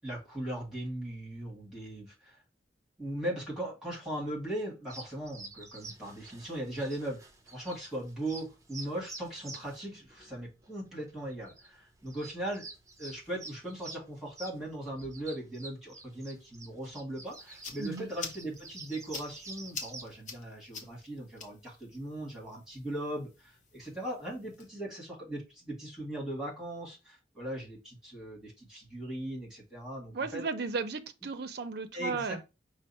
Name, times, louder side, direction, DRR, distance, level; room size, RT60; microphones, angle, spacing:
voice 1, 0.0-2.4 3.0-7.2 7.5-12.7 13.0-30.4 31.9-32.5, right 1 dB, 5° right, 1.9 m, -39 dB
sound 1, 4.9-20.1, right 3 dB, 20° right, 0.7 m, -49 dB
sound 2, 17.3-24.7, left 5 dB, 45° left, 0.7 m, -48 dB
voice 2, 17.8-18.1 30.1-32.4, right 4 dB, 65° right, 0.5 m, -35 dB
5.2 x 2.1 x 4.1 m
head